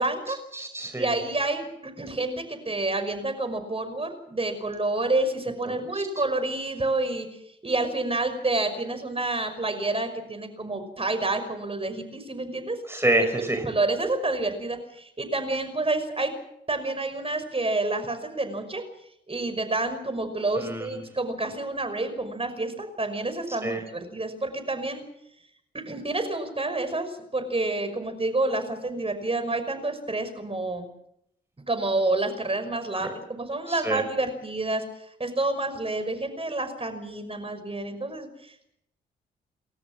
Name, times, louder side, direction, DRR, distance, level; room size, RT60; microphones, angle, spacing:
voice 1, 0.0-0.4 0.9-12.8 13.7-16.3 16.7-18.8 19.3-25.0 25.9-30.9 31.7-38.7, right 2 dB, 25° right, 8 dB, 5.8 m, -29 dB
voice 2, 0.5-1.2 5.9-6.0 12.9-13.7 20.6-21.0 23.6-23.8 33.8-34.0, right 1 dB, 10° right, 5 dB, 5.2 m, -26 dB
29.5 x 13.5 x 7.5 m, 0.75 s
hypercardioid pair, 45°, 21 cm